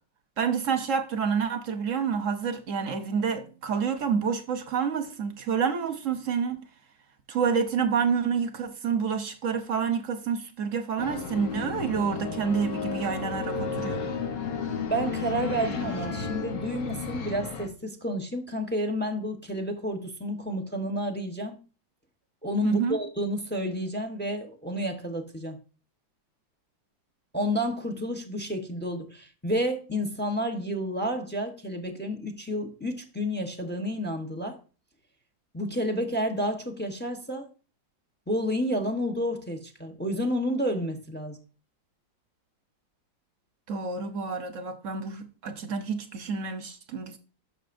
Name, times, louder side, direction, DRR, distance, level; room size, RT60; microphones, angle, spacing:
voice 1, 0.4-6.6 7.3-14.0 22.6-23.0 43.7-47.2, right 6 dB, 55° right, 1.0 m, -28 dB
sound 1, 11.0-17.7, left 5 dB, 70° left, 1.7 m, -33 dB
voice 2, 14.9-21.6 22.4-25.6 27.3-34.6 35.5-37.5 38.3-41.4, equal, 10° left, 0.7 m, -30 dB
11.0 x 6.8 x 2.6 m
omnidirectional pair, 2.1 m